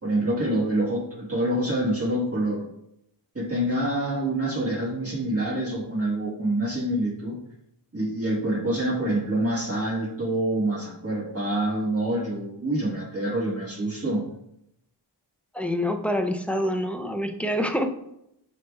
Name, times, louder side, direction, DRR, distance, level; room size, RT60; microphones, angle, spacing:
voice 1, 0.0-2.6 3.3-7.4 7.9-14.3, right 1 dB, 30° right, -4 dB, 1.3 m, -26 dB
voice 2, 15.5-17.9, equal, 5° left, 5 dB, 0.3 m, -26 dB
6.5 x 2.2 x 3.2 m, 0.78 s
wide cardioid pair, 85°, 43 cm